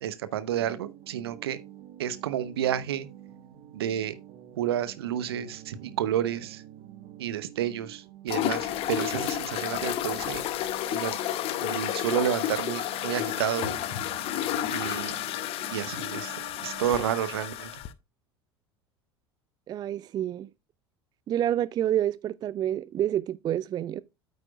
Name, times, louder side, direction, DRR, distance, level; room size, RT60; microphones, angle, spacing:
voice 1, 0.0-1.6 2.0-3.1 3.7-4.1 4.6-6.6 7.2-10.5 10.9-11.2 11.6-13.8 14.7-15.1 15.7-16.4 16.6-17.7, right 10 dB, 70° right, 0.8 m, -30 dB
sound 1, 0.5-17.1, right 11 dB, 45° right, 1.3 m, -48 dB
sound 2, 8.3-17.9, left 12 dB, 45° left, 0.8 m, -31 dB
voice 2, 19.7-20.5 21.3-24.0, right 11 dB, 30° right, 0.3 m, -28 dB
8.9 x 8.2 x 2.3 m
figure-of-eight pair, 70°, 13 cm